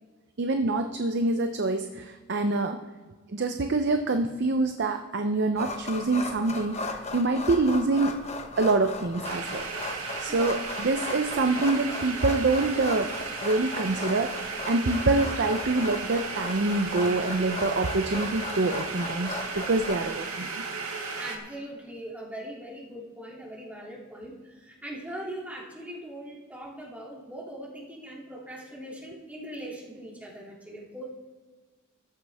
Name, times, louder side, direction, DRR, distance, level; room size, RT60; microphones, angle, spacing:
voice 1, 0.4-2.8 3.3-8.2 8.6-9.7 10.2-13.1 13.4-14.3 14.7-20.5, right 3 dB, 55° right, 6 dB, 0.6 m, -26 dB
sound 1, 5.6-19.9, left 3 dB, 30° left, 1.1 m, -37 dB
sound 2, 9.2-21.4, right 4 dB, 85° right, 1.8 m, -35 dB
voice 2, 21.2-31.0, right 1 dB, 5° right, -4 dB, 2.7 m, -41 dB
14.0 x 12.5 x 3.5 m, 1.4 s
head